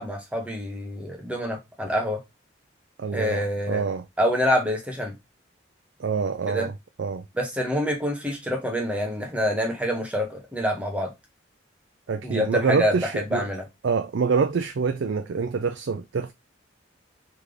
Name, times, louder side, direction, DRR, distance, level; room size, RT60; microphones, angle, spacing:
voice 1, 0.0-2.2 3.1-3.8 4.2-5.1 6.5-6.7 7.4-11.1 12.2-12.9 13.3-13.6, equal, 5° right, 1.0 m, -26 dB
voice 2, 3.0-4.0 6.0-6.7 7.0-7.2 12.1-13.5 13.8-16.3, right 5 dB, 70° right, 0.4 m, -26 dB
3.4 x 3.2 x 3.7 m
head